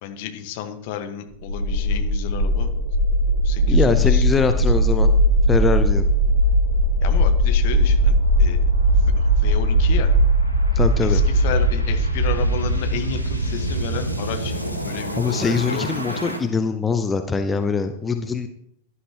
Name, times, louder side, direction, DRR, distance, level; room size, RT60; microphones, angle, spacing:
voice 1, 0.0-2.7 3.4-4.2 4.5-4.6 7.0-10.1 11.0-16.3, left 9 dB, 50° left, 6 dB, 1.5 m, -32 dB
sound 1, 1.4-16.4, equal, 85° right, 2.3 m, -19 dB
voice 2, 3.7-5.1 5.5-6.0 10.7-11.2 15.2-18.5, left 5 dB, 15° left, 8 dB, 0.8 m, -23 dB
17.0 x 11.5 x 3.0 m, 0.73 s
figure-of-eight pair, 90°, 0 cm